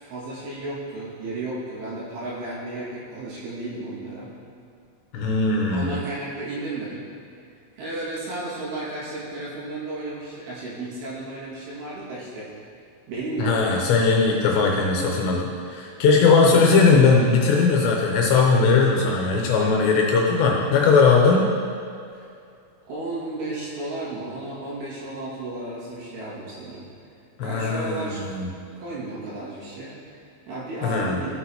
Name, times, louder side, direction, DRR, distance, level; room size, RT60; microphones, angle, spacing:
voice 1, 0.0-4.3 5.7-7.1 7.8-12.5 13.1-13.8 16.5-16.8 22.2-22.3 22.9-26.8 27.4-28.3 28.8-31.4, right 2 dB, 85° right, -7 dB, 4.4 m, -33 dB
voice 2, 5.1-6.0 13.4-21.5 27.4-28.5 30.8-31.2, left 4 dB, 80° left, -1 dB, 2.7 m, -19 dB
14.0 x 6.2 x 2.9 m, 2.4 s
omnidirectional pair, 5.5 m